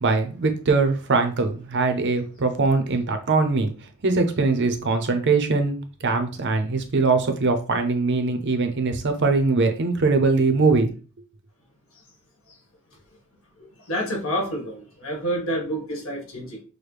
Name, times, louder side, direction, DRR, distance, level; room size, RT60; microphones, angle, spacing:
voice 1, 0.0-3.7 4.0-10.9, right 3 dB, 55° right, 0.7 m, -22 dB
voice 2, 13.9-16.6, equal, 65° left, 1.8 m, -28 dB
6.3 x 2.2 x 3.3 m
head